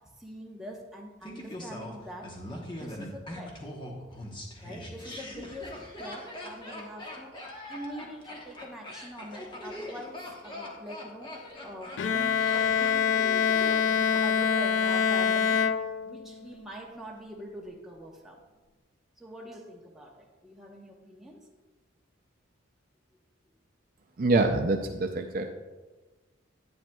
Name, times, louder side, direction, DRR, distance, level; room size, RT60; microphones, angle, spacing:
voice 1, 0.0-2.4 2.7-3.7 4.6-15.6 16.0-18.4 19.2-21.5, equal, ahead, -2 dB, 1.0 m, -44 dB
Laughter, 1.2-14.2 14.5-14.6, left 1 dB, 25° left, 1.0 m, -42 dB
Bowed string instrument, 12.0-16.4, left 7 dB, 65° left, 0.3 m, -25 dB
voice 2, 24.2-25.5, right 2 dB, 45° right, 4 dB, 0.4 m, -25 dB
10.5 x 8.8 x 2.3 m, 1.3 s
head